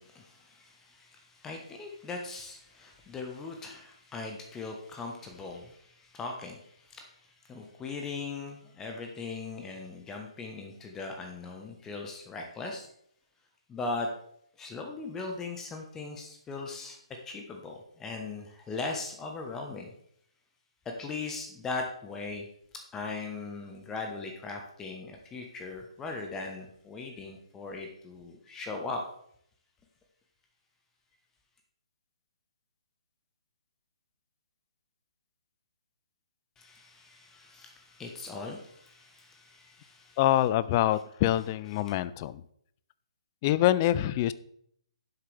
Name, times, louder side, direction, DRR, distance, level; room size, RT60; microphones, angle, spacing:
voice 1, 0.0-12.9 13.7-14.1 14.6-17.0 17.2-19.9 20.8-22.5 22.9-29.0 36.6-40.2, left 3 dB, 15° left, 2 dB, 1.2 m, -39 dB
voice 2, 40.2-42.4 43.4-44.3, left 13 dB, 30° left, 16 dB, 0.4 m, -25 dB
11.0 x 7.9 x 3.4 m, 0.69 s
figure-of-eight pair, 130°, 3 cm